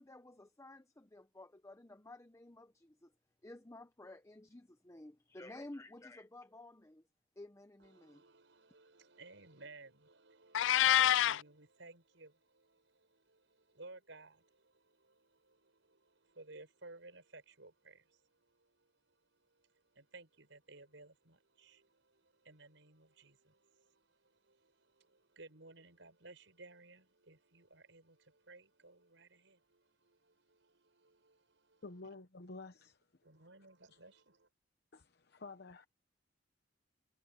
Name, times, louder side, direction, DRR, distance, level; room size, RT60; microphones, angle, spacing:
voice 1, 0.0-3.1 3.4-7.1 7.4-8.2, left 2 dB, 15° left, 0.8 m, -53 dB
voice 2, 7.8-32.1 33.2-34.5, right 3 dB, 80° right, 5.3 m, -58 dB
Meow, 10.5-11.4, left 12 dB, 75° left, 0.3 m, -27 dB
voice 3, 31.8-33.1 33.9-34.0 34.9-35.9, left 3 dB, 60° left, 0.9 m, -51 dB
head